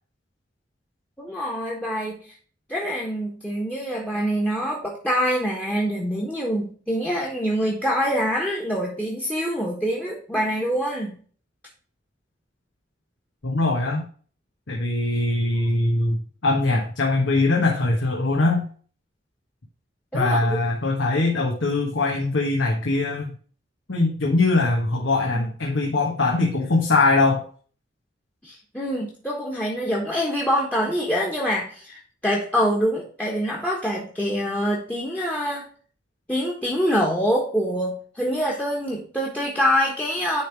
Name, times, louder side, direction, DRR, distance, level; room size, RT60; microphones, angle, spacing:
voice 1, 1.2-2.3 2.7-11.2 20.1-20.6 28.4-35.7 36.3-40.4, equal, 10° left, -1 dB, 1.3 m, -25 dB
voice 2, 13.4-14.0 14.7-18.6 20.1-23.3 23.9-27.4, left 2 dB, 80° left, 0 dB, 1.3 m, -22 dB
10.0 x 3.5 x 4.6 m, 0.43 s
head